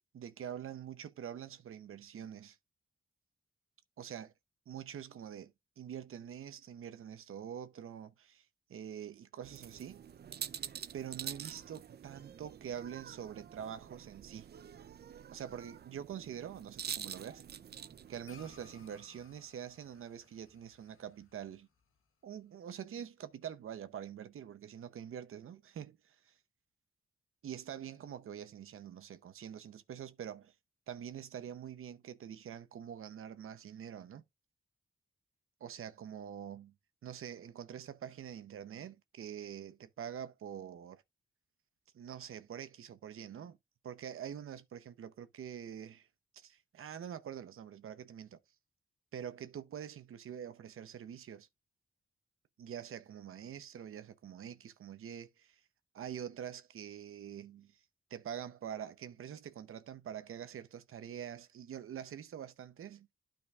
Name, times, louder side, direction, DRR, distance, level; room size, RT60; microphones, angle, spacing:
voice 1, 0.0-2.6 4.0-4.3 4.7-10.0 10.9-14.5 15.3-17.4 18.1-21.7 22.2-26.4 27.4-30.5 30.9-34.2 35.6-36.7 37.0-41.0 41.9-43.6 43.8-46.1 46.3-48.4 49.1-51.5 52.6-55.6 55.9-57.8 58.1-63.1, right 9 dB, 85° right, 0.8 m, -45 dB
sound 1, 9.4-18.9, right 8 dB, 50° right, 0.5 m, -47 dB
sound 2, 18.2-22.9, left 5 dB, 75° left, 1.3 m, -62 dB
12.0 x 5.1 x 2.4 m
wide cardioid pair, 115°, 21 cm